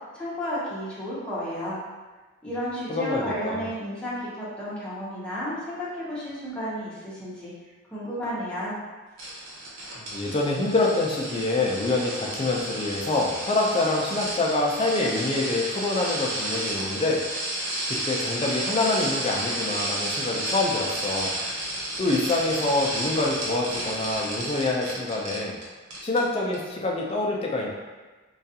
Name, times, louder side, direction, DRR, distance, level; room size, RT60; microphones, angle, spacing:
voice 1, 0.1-1.8 2.4-7.5 7.9-8.8, equal, 5° left, -9 dB, 0.7 m, -32 dB
voice 2, 2.9-3.7 10.0-17.2 17.9-21.3 22.0-25.6 26.0-27.7, left 2 dB, 30° left, -1 dB, 0.3 m, -26 dB
sound 1, 9.2-25.6 25.9-26.2 26.5-26.6, right 1 dB, 85° right, 0.7 m, -32 dB
2.3 x 2.3 x 2.7 m, 1.3 s
head